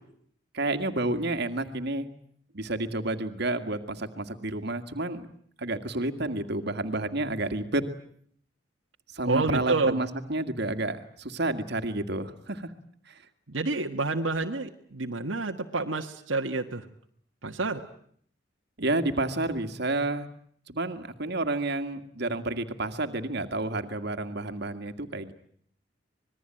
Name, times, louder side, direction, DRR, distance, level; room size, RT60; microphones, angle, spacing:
voice 1, 0.5-2.1 2.5-5.3 5.6-7.9 9.1-12.7 13.1-13.2 18.8-20.3 20.7-25.3, right 2 dB, 60° right, 8 dB, 2.1 m, -30 dB
voice 2, 9.2-10.0 13.5-16.8 17.4-17.8, right 3 dB, 85° right, 2 dB, 1.6 m, -28 dB
26.0 x 21.0 x 9.0 m, 0.63 s
head